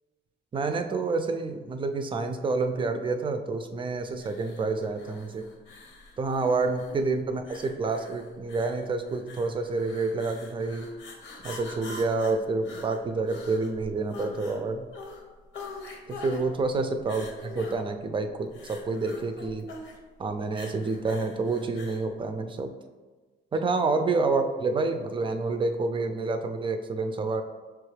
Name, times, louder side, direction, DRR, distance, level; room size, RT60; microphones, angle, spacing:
voice 1, 0.5-5.5 6.2-10.9 11.4-14.9 16.1-19.7 20.2-22.7 23.5-27.4, right 3 dB, 25° right, 7 dB, 0.4 m, -28 dB
sound 1, 4.2-22.1, left 3 dB, 80° left, 0.9 m, -45 dB
6.0 x 2.3 x 3.2 m, 1.3 s
cardioid pair, 90°, 20 cm